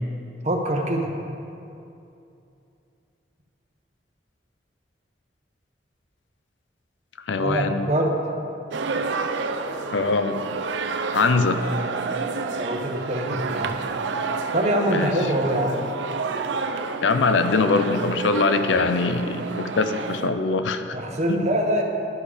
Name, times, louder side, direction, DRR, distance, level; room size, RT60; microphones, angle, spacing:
voice 1, 0.4-1.2 7.4-8.2 12.6-13.7 14.5-15.8 20.9-21.8, right 1 dB, 40° right, 2 dB, 0.9 m, -24 dB
voice 2, 7.3-7.9 9.9-10.4 11.1-11.7 14.9-15.1 17.0-21.0 21.3-21.5, left 3 dB, 90° left, 9 dB, 0.5 m, -22 dB
sound 1, 8.7-20.3, right 4 dB, 85° right, 0.5 m, -30 dB
12.0 x 5.2 x 5.0 m, 2.7 s
head